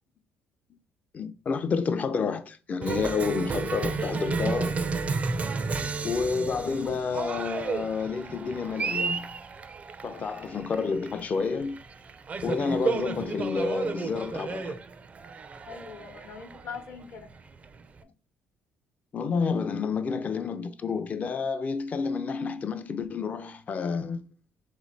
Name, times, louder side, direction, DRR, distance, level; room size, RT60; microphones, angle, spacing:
voice 1, 1.1-4.8 6.0-9.4 10.0-11.8 12.4-14.8 19.1-24.2, left 5 dB, 35° left, 0.4 m, -29 dB
Cheering, 2.8-18.0, right 4 dB, 30° right, 0.4 m, -33 dB
voice 2, 5.6-6.0 10.1-10.4 15.7-17.3, left 6 dB, 65° left, 0.9 m, -43 dB
3.4 x 3.2 x 3.9 m
cardioid pair, 105°, 4 cm